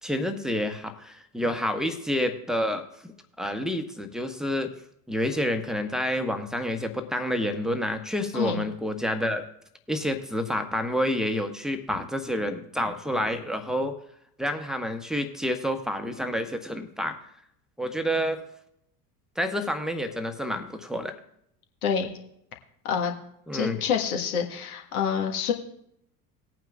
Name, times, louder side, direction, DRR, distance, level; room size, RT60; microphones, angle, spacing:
voice 1, 0.0-2.8 3.4-4.7 5.1-9.4 9.9-14.0 14.4-17.2 17.8-18.4 19.4-21.1 23.5-23.8, equal, ahead, 4 dB, 1.2 m, -28 dB
voice 2, 23.5-25.5, left 7 dB, 65° left, 3 dB, 1.7 m, -27 dB
19.0 x 9.1 x 2.5 m, 0.73 s
figure-of-eight pair, 70°, 48 cm